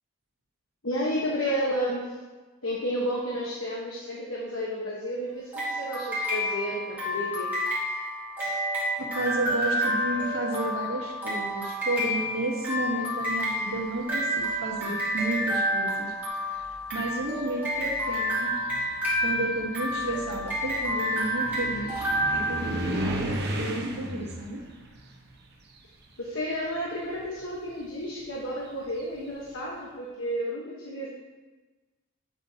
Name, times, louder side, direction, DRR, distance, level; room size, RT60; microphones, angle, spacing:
voice 1, 0.8-2.2 2.6-7.5 26.2-31.1, equal, 65° left, -4 dB, 1.2 m, -31 dB
sound 1, 5.5-23.2, equal, 10° right, 2.7 m, -29 dB
voice 2, 9.0-16.1 16.4-16.6 16.9-18.5 19.2-22.0 22.3-23.0 23.5-24.6, right 2 dB, 75° right, -3 dB, 1.2 m, -32 dB
sound 2, 14.4-14.9 15.9-16.0 16.6-26.5 26.8-29.4, right 1 dB, 50° right, 1.0 m, -36 dB
8.8 x 8.1 x 2.8 m, 1.3 s
head